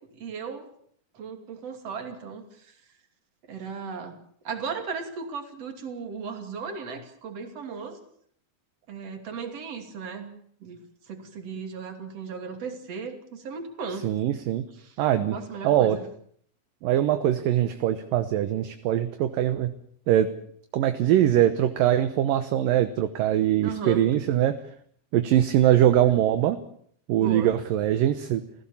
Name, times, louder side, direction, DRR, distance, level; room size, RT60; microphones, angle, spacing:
voice 1, 0.1-0.7 1.1-2.7 3.5-4.2 4.4-8.0 8.9-10.3 10.6-14.1 14.8-15.0 15.3-16.1 23.6-24.0 27.2-27.6, right 5 dB, 45° right, 6 dB, 3.6 m, -36 dB
voice 2, 14.0-14.6 15.0-15.3 15.6-16.0 16.8-19.7 20.1-20.3 20.7-24.5 25.1-26.6 27.1-28.4, right 12 dB, 70° right, 10 dB, 2.5 m, -22 dB
28.0 x 16.0 x 7.2 m, 0.63 s
omnidirectional pair, 4.5 m